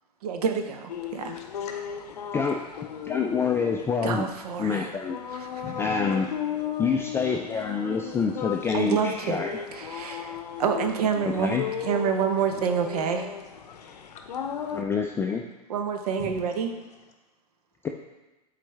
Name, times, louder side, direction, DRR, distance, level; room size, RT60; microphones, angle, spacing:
voice 1, 0.2-1.3 4.0-4.9 5.3-5.6 8.7-9.5 9.7-13.3 15.7-16.7, right 7 dB, 70° right, 6 dB, 0.8 m, -28 dB
sound 1, 0.9-14.8, left 8 dB, 75° left, 0.6 m, -36 dB
voice 2, 1.3-1.8 5.6-6.0 8.7-8.8 13.7-14.2 16.2-16.4, left 6 dB, 35° left, 4 dB, 0.9 m, -42 dB
voice 3, 3.0-4.3 4.6-5.2 5.8-6.3 6.8-9.6 11.2-11.6 14.7-15.4 17.8-17.9, left 5 dB, 10° left, 2 dB, 0.3 m, -27 dB
7.6 x 4.1 x 3.3 m, 1.1 s
hypercardioid pair, 100°, 21 cm